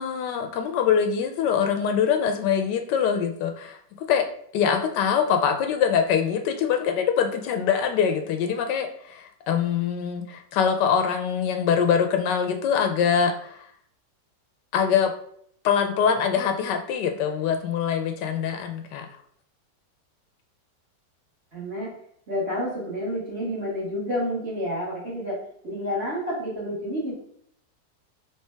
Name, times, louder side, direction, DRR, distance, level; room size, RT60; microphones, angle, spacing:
voice 1, 0.0-3.8 4.1-4.3 4.5-13.7 14.7-15.1 15.6-19.1, left 7 dB, 80° left, 6 dB, 1.2 m, -23 dB
voice 2, 21.5-21.9 22.3-25.4 25.6-27.1, equal, 35° right, -6 dB, 1.8 m, -29 dB
4.4 x 3.0 x 3.3 m, 0.65 s
omnidirectional pair, 1.9 m